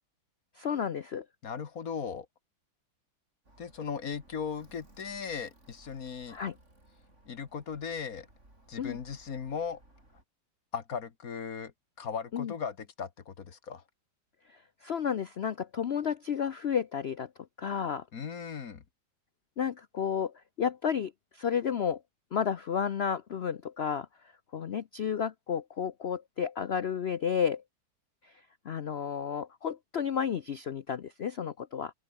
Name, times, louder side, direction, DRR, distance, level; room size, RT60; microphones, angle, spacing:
voice 1, 0.6-1.2 6.3-6.5 8.8-9.0 12.3-12.5 14.5-17.3 17.6-18.0 19.6-22.0 22.3-24.1 24.5-27.6 28.2-28.3 28.6-31.9, left 7 dB, 85° left, 0.5 m, -32 dB
voice 2, 1.4-2.3 3.6-6.4 7.3-8.3 8.7-9.8 10.7-11.7 12.0-13.8 18.1-18.8, left 6 dB, 50° left, 1.8 m, -37 dB
Alarm, 3.4-10.2, right 1 dB, 35° right, 7.5 m, -60 dB
open air
omnidirectional pair, 2.0 m